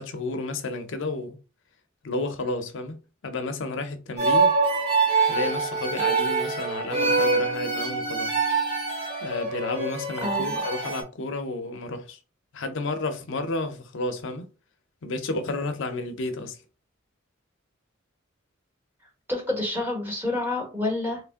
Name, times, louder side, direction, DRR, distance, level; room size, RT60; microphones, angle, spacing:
voice 1, 0.0-1.4 2.0-4.5 5.3-8.5 9.2-12.2 12.5-14.5 15.0-16.6, left 2 dB, 65° left, 0.6 m, -31 dB
sound 1, 4.2-11.0, right 4 dB, 30° right, 1.3 m, -24 dB
voice 2, 10.2-10.6 19.3-21.2, left 2 dB, 10° right, 1.5 m, -28 dB
3.1 x 2.5 x 3.5 m
head